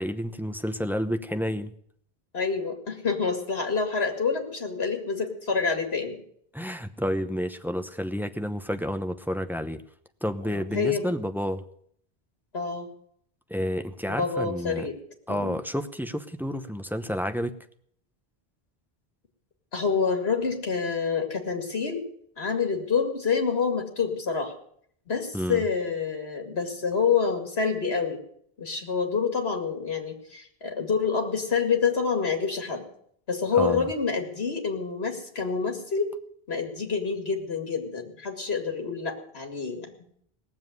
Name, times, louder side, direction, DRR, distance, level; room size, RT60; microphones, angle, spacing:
voice 1, 0.0-1.7 6.5-9.8 10.2-11.6 13.5-14.9 15.3-17.6 25.3-25.6 33.6-33.9, equal, ahead, 8 dB, 0.7 m, -30 dB
voice 2, 2.3-6.2 10.4-11.1 12.5-12.9 14.1-15.0 15.3-15.6 19.7-22.0 22.4-24.5 25.1-28.2 28.6-32.9 33.3-36.1 36.5-39.9, left 5 dB, 85° left, 4 dB, 2.4 m, -27 dB
18.0 x 7.4 x 9.4 m, 0.66 s
omnidirectional pair, 1.0 m